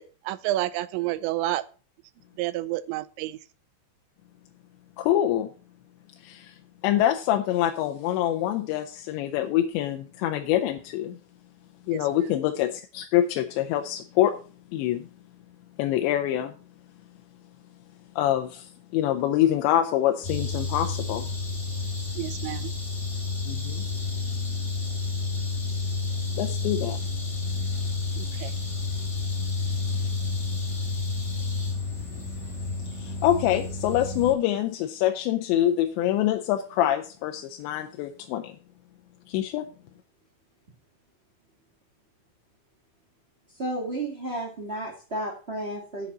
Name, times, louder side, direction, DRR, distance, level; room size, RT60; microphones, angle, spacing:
voice 1, 0.0-1.6 2.4-3.4 11.9-12.0 22.2-22.7 28.2-28.5, right 15 dB, 80° right, 15 dB, 2.7 m, -30 dB
voice 2, 5.0-5.5 6.2-6.6 6.8-11.2 11.9-14.4 14.7-15.1 15.8-16.5 18.2-21.3 23.5-23.9 26.4-27.0 32.8-38.6 39.3-39.7, left 12 dB, 80° left, 5 dB, 2.8 m, -25 dB
sound 1, 20.2-34.3, left 3 dB, 15° left, 2.8 m, -30 dB
voice 3, 43.6-46.1, right 1 dB, 60° right, -2 dB, 0.6 m, -32 dB
8.0 x 7.5 x 7.0 m, 0.36 s
omnidirectional pair, 5.5 m